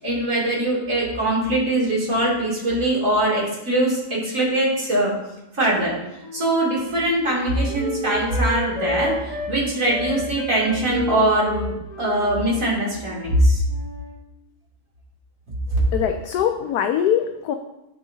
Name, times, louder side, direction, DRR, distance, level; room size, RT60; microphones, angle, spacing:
voice 1, 0.0-5.1 5.5-5.9 6.3-13.6 15.7-15.8, right 1 dB, 55° right, -5 dB, 3.2 m, -22 dB
Wind instrument woodwind instrument, 5.7-9.5 9.8-13.4 13.7-14.2, left 2 dB, 25° left, 1.7 m, -33 dB
voice 2, 15.7-17.5, left 9 dB, 75° left, 6 dB, 1.1 m, -23 dB
10.5 x 8.1 x 2.8 m, 0.92 s
omnidirectional pair, 1.7 m